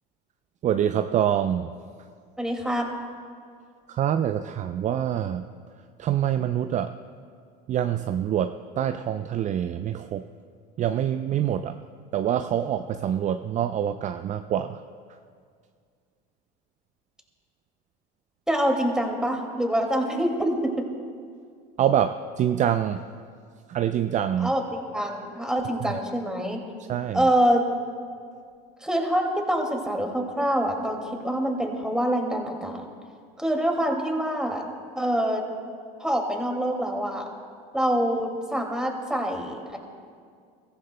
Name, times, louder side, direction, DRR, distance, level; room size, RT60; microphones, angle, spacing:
voice 1, 0.6-1.7 3.9-5.4 6.0-6.9 7.7-10.3 10.8-11.8 12.1-14.8 21.8-23.0 23.7-24.5 25.8-26.0 26.9-27.3, right 10 dB, 35° right, 9 dB, 0.4 m, -25 dB
voice 2, 2.4-2.9 18.5-20.7 24.4-26.6 27.1-27.7 28.8-32.8 33.4-34.6 35.0-35.4 36.0-37.3 37.7-39.8, equal, 5° right, 1 dB, 2.2 m, -25 dB
22.5 x 14.5 x 2.2 m, 2.2 s
supercardioid pair, 90°, 20 cm